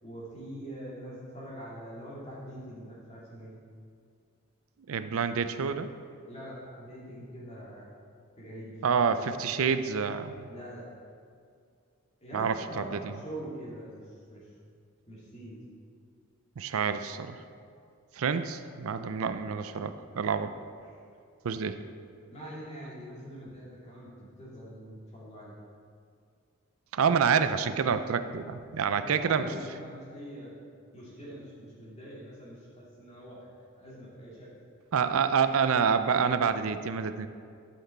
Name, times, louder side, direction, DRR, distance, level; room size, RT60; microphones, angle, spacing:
voice 1, 0.0-3.6 6.3-7.9 8.4-9.3 10.5-10.9 12.2-14.0 14.3-14.5 15.1-15.6 19.2-19.3 22.3-24.1 24.4-25.5 29.0-30.5 30.9-33.5 33.8-34.5, equal, 30° left, -7 dB, 2.4 m, -43 dB
voice 2, 4.9-5.9 8.8-10.5 12.3-13.1 16.6-17.4 18.2-20.5 21.4-21.8 26.9-29.5 34.9-37.3, right 6 dB, 75° right, 11 dB, 0.4 m, -28 dB
11.5 x 5.9 x 4.3 m, 2.3 s
head